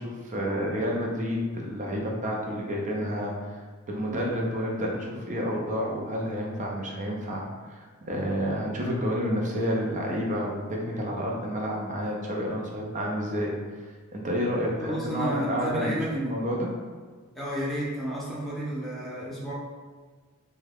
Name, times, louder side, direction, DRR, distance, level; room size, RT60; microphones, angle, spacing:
voice 1, 0.0-3.6 3.9-13.5 14.1-16.7, equal, 35° right, -1 dB, 0.6 m, -30 dB
voice 2, 14.8-16.4 17.3-19.5, equal, ahead, -7 dB, 0.7 m, -31 dB
3.3 x 2.2 x 3.4 m, 1.5 s
head